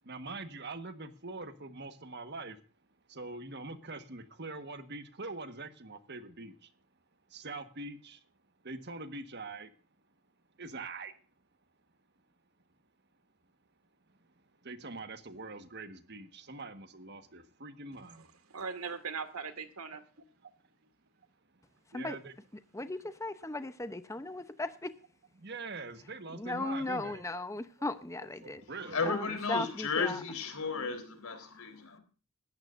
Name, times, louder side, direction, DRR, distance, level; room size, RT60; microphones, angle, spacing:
voice 1, 0.1-2.6 3.1-6.5 7.3-8.2 8.6-9.7 10.6-11.1 14.6-18.3 21.9-22.3 25.4-27.2 28.4-29.0, right 3 dB, 50° right, 1.4 m, -43 dB
voice 2, 18.5-20.0, right 5 dB, 85° right, 2.0 m, -39 dB
voice 3, 22.7-24.9 26.3-28.6 29.0-30.2, left 2 dB, 15° left, 0.7 m, -37 dB
voice 4, 28.9-32.0, left 4 dB, 80° left, 3.9 m, -34 dB
18.5 x 13.5 x 2.6 m
head